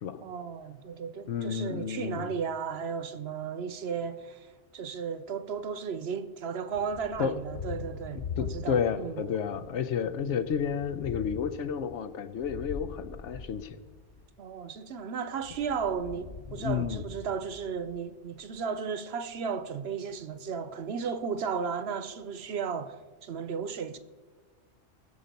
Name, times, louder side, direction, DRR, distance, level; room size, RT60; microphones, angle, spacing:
voice 1, 0.2-9.2 10.0-10.1 14.4-24.0, right 6 dB, 60° right, 0.9 m, -35 dB
voice 2, 1.3-2.3 7.2-7.3 8.1-13.8 16.5-17.0, left 7 dB, 75° left, 1.0 m, -31 dB
Thunder, 6.7-9.2 9.5-14.3 15.4-18.0, left 5 dB, 50° left, 0.4 m, -42 dB
20.0 x 7.0 x 5.2 m
omnidirectional pair, 1.3 m